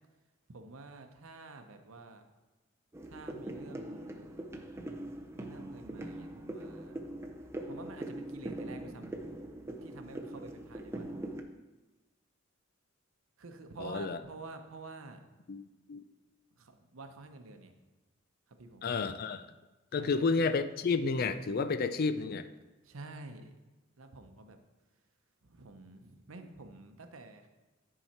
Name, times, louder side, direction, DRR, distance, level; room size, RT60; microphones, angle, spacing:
voice 1, 0.5-2.2 3.1-4.2 5.4-7.0 7.7-9.2 9.8-11.1 13.4-15.2 16.6-17.7 18.6-18.8 20.0-20.2 22.8-23.5 24.0-24.6 25.5-27.5, right 3 dB, 80° right, 7 dB, 0.8 m, -49 dB
sound 1, 2.9-11.4, right 1 dB, 15° right, 0.5 m, -42 dB
voice 2, 13.8-14.2 15.5-16.0 18.8-19.5 19.9-22.5, left 4 dB, 45° left, 11 dB, 0.4 m, -31 dB
10.0 x 4.8 x 4.3 m, 1.1 s
head